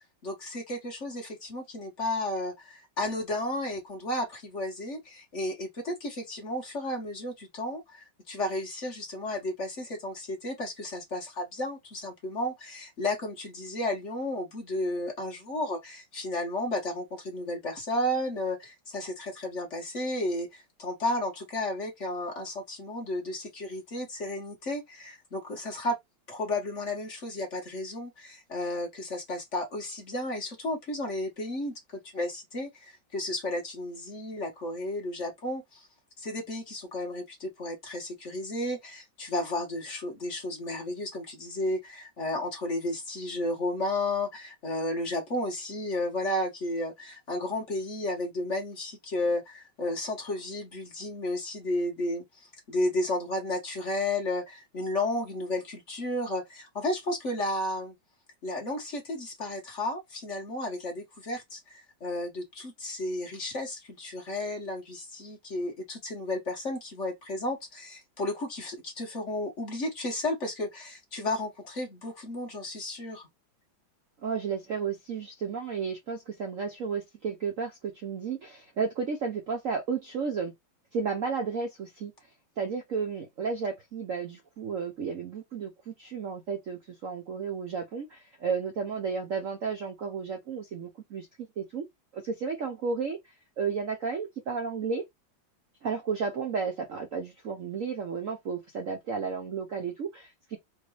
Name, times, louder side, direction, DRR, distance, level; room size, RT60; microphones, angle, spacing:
voice 1, 0.2-26.0 26.3-31.7 32.1-35.9 36.2-57.9 58.4-73.3, left 1 dB, 40° left, 1.7 m, -33 dB
voice 2, 74.2-80.5 80.9-82.1 82.6-91.9 92.1-95.0 95.8-100.6, right 5 dB, 60° right, 0.9 m, -33 dB
4.5 x 2.6 x 3.2 m
omnidirectional pair, 2.1 m